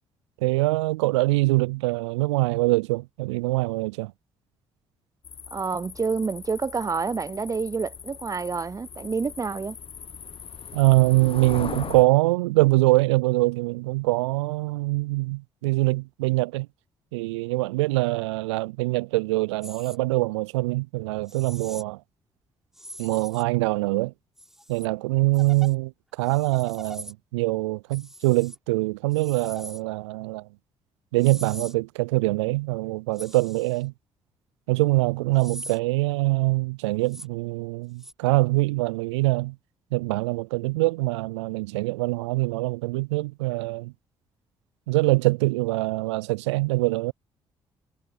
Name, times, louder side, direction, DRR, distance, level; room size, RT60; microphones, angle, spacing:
voice 1, 0.4-4.1 10.7-16.7 17.1-22.0 23.0-24.1 24.7-30.5 31.1-33.9 34.7-39.5 39.9-43.9 44.9-47.1, right 22 dB, 80° right, 0.4 m, -24 dB
sound 1, 5.2-12.0, left 7 dB, 40° left, 1.0 m, -39 dB
voice 2, 5.5-9.8, right 5 dB, 25° right, 0.6 m, -28 dB
sound 2, 19.6-20.0 21.3-21.8 22.7-23.6 24.4-24.9 25.3-25.7 26.2-27.1 27.9-28.6 29.1-29.8 31.2-31.7 33.1-33.8 35.4-35.8 37.1-37.3 38.0-38.1, equal, 5° right, 6.3 m, -42 dB
figure-of-eight pair, 45°, 15 cm